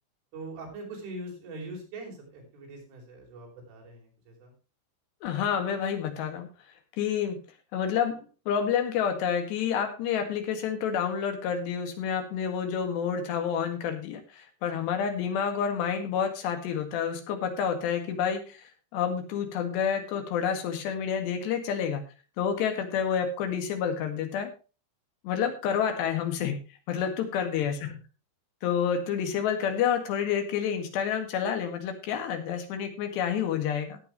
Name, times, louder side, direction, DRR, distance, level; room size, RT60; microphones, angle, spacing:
voice 1, 0.3-4.5 27.6-28.0, right 2 dB, 80° right, 0 dB, 7.3 m, -42 dB
voice 2, 5.2-6.5 7.0-7.4 7.7-22.0 22.4-24.5 25.2-26.6 26.9-28.0 28.6-34.0, left 7 dB, 65° left, 6 dB, 3.9 m, -29 dB
18.0 x 8.5 x 3.1 m, 0.32 s
omnidirectional pair, 5.5 m